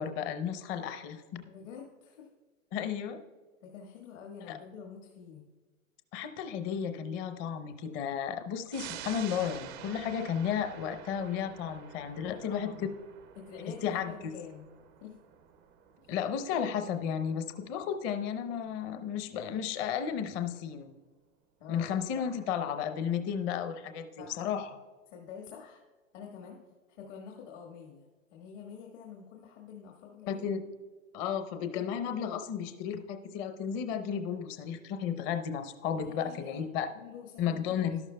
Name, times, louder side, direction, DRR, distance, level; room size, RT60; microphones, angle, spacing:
voice 1, 0.0-1.5 2.7-3.2 4.5-4.6 6.1-12.7 13.8-14.1 16.1-20.9 21.7-24.8 30.3-30.6 31.1-36.9 37.4-38.0, left 8 dB, 30° left, 8 dB, 0.7 m, -33 dB
voice 2, 1.5-2.3 3.6-5.4 12.1-12.9 13.4-14.6 15.0-15.2 21.6-22.4 24.2-24.5 25.1-25.8 26.1-26.6 26.9-28.0 28.3-30.5 35.9-36.6 36.9-37.9, left 6 dB, 60° left, 0 dB, 1.7 m, -47 dB
sound 1, 8.7-19.7 20.1-20.2, right 9 dB, 20° right, 0.4 m, -49 dB
12.5 x 12.0 x 2.2 m, 1.4 s
hypercardioid pair, 125°, 41 cm